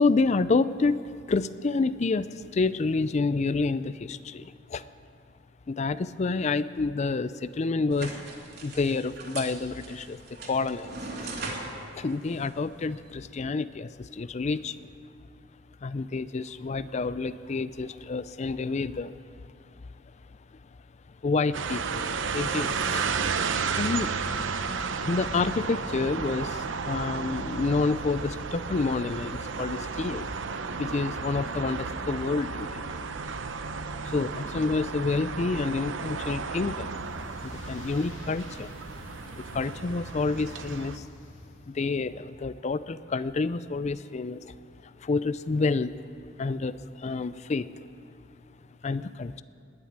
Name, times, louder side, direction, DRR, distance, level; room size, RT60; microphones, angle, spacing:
voice 1, 0.0-4.8 5.7-8.2 8.6-10.2 10.5-11.2 11.9-14.8 15.8-19.2 21.2-23.1 23.5-24.1 25.0-30.4 30.8-32.9 34.0-37.1 37.4-38.7 39.4-41.0 41.7-44.5 45.0-45.9 46.4-47.7 48.8-49.4, left 3 dB, 35° left, 15 dB, 0.4 m, -28 dB
sound 1, 7.9-13.1, right 3 dB, 60° right, 2.7 m, -40 dB
sound 2, 21.5-41.0, right 5 dB, 75° right, 0.7 m, -33 dB
sound 3, 36.7-42.0, left 1 dB, 80° left, 2.6 m, -47 dB
19.5 x 7.2 x 9.5 m, 2.6 s
head